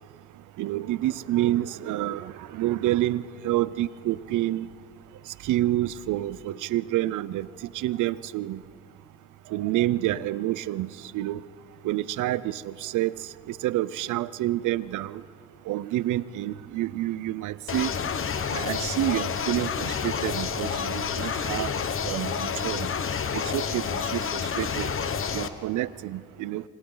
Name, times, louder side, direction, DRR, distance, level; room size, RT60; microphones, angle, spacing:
voice 1, 0.6-4.7 5.3-7.5 7.7-8.6 9.5-11.4 11.8-15.2 15.7-17.9 18.5-22.9 23.3-24.9 25.3-26.6, right 14 dB, 80° right, 18 dB, 0.6 m, -28 dB
sound 1, 17.7-25.5, left 6 dB, 45° left, 1.2 m, -29 dB
27.0 x 26.5 x 3.9 m, 2.3 s
cardioid pair, 90°, 30 cm